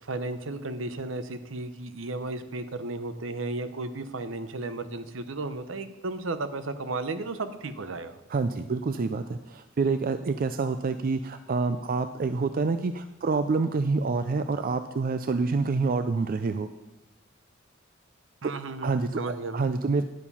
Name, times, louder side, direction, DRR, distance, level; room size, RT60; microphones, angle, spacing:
voice 1, 0.0-8.2 18.4-19.7, right 2 dB, 70° right, 11 dB, 0.8 m, -34 dB
voice 2, 8.3-16.7 18.4-18.5 18.8-20.0, right 4 dB, 45° right, 10 dB, 0.4 m, -27 dB
10.5 x 7.2 x 5.5 m, 1.0 s
head